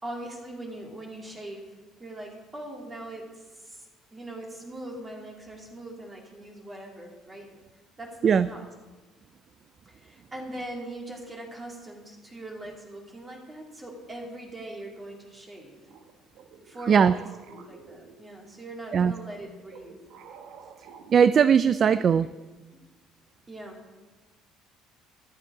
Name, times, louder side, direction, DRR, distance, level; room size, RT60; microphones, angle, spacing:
voice 1, 0.0-1.7 2.0-7.5 8.0-8.6 9.9-15.8 16.6-17.2 17.7-20.0 22.0-22.1 22.7-22.8 23.5-23.8, right 1 dB, 15° right, 0 dB, 2.3 m, -41 dB
sound 1, 15.9-18.6 19.2-21.9, right 6 dB, 70° right, 1.2 m, -49 dB
voice 2, 21.1-22.3, right 7 dB, 35° right, 14 dB, 0.3 m, -19 dB
13.5 x 12.5 x 4.8 m, 1.3 s
cardioid pair, 150°, 0 cm